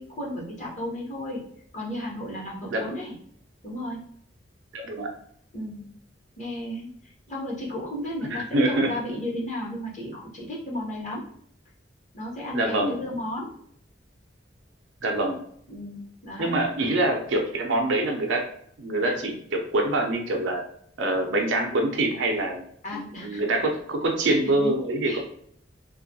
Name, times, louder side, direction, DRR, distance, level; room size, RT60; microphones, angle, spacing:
voice 1, 0.0-1.4 1.7-3.1 3.6-4.0 5.5-5.8 6.4-6.9 7.3-11.2 12.1-13.5 15.7-16.6 22.8-23.4 24.2-24.7 25.0-25.2, left 1 dB, 40° left, -4 dB, 0.9 m, -34 dB
voice 2, 4.7-5.1 8.3-8.9 12.5-13.0 15.0-15.4 16.4-18.5 18.8-20.6 21.0-22.6 22.9-25.2, right 2 dB, 85° right, 2 dB, 0.5 m, -25 dB
2.5 x 2.2 x 2.6 m, 0.66 s
head